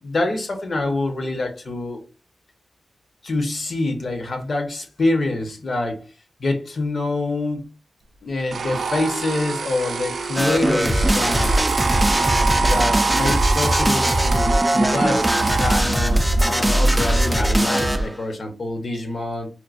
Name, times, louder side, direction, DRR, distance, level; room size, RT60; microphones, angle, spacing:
voice 1, 0.0-2.0 3.2-6.0 6.4-7.7 8.2-11.7 12.6-19.5, left 2 dB, 50° left, 4 dB, 0.9 m, -26 dB
sound 1, 8.5-15.8, right 5 dB, 70° right, 0.4 m, -25 dB
sound 2, 10.4-18.2, right 1 dB, 5° right, 0.4 m, -20 dB
4.4 x 2.2 x 2.5 m, 0.33 s
wide cardioid pair, 105°, 0 cm